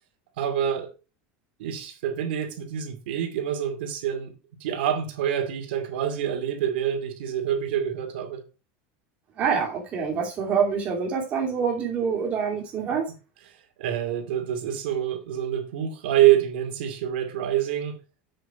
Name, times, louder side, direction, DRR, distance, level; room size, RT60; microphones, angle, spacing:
voice 1, 0.4-0.9 1.6-4.3 4.6-8.4 13.8-18.0, right 10 dB, 85° right, 2.4 m, -26 dB
voice 2, 9.4-13.1, right 6 dB, 25° right, 2.8 m, -26 dB
7.8 x 6.5 x 4.9 m
supercardioid pair, 180°, 5 cm